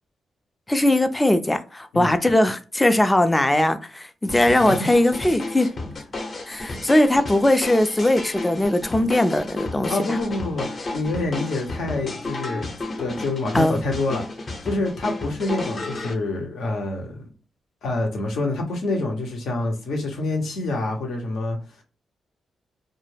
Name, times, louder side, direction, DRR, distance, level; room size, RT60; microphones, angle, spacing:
voice 1, 0.7-5.7 6.5-9.9 13.5-13.8, left 1 dB, 15° left, 10 dB, 0.4 m, -20 dB
sound 1, 4.3-16.1, left 2 dB, 45° left, 0.8 m, -33 dB
voice 2, 4.6-4.9 6.7-6.8 9.9-10.7 10.9-12.7 13.0-17.2 17.8-21.6, left 2 dB, 80° left, 2 dB, 0.8 m, -27 dB
2.2 x 2.0 x 3.2 m, 0.35 s
cardioid pair, 65°, 0 cm